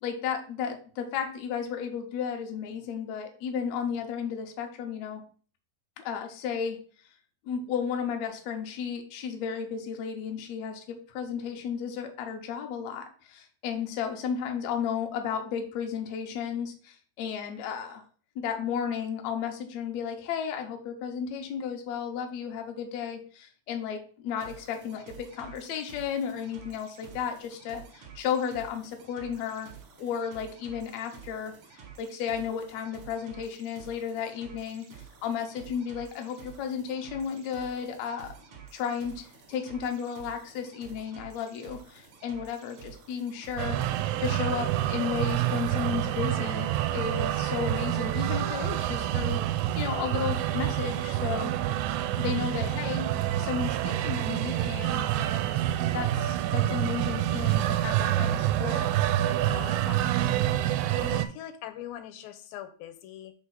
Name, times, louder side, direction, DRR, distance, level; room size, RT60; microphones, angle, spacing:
voice 1, 0.0-5.2 6.0-6.8 7.5-18.0 18.4-29.7 30.0-31.5 32.0-34.9 35.2-38.3 38.7-43.8 44.2-51.5 52.2-53.1 53.4-55.1 55.9-58.9, left 7 dB, 70° left, 4 dB, 1.7 m, -33 dB
sound 1, 24.4-44.0, right 7 dB, 70° right, 1.2 m, -50 dB
sound 2, 43.6-61.3, right 12 dB, 85° right, 2.3 m, -27 dB
voice 2, 52.5-53.0 59.5-60.4 61.0-63.3, left 11 dB, 90° left, 8 dB, 2.4 m, -42 dB
5.2 x 3.6 x 5.7 m, 0.41 s
omnidirectional pair, 4.1 m